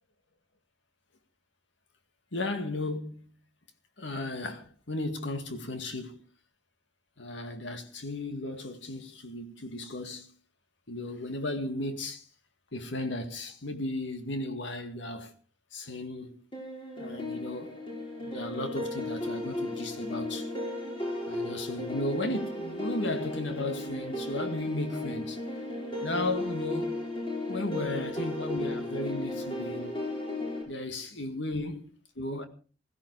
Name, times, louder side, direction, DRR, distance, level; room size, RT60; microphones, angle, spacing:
voice 1, 2.3-3.3 4.0-6.2 7.2-10.3 10.9-12.2 12.7-15.3 15.7-16.4 17.0-17.8 18.2-20.5 21.3-25.4 26.0-27.0 27.5-30.0 30.7-31.8 32.2-32.5, left 2 dB, 70° left, 2.0 m, -35 dB
sound 1, 16.5-30.6, left 1 dB, 30° left, 5.8 m, -35 dB
16.0 x 15.0 x 4.8 m
head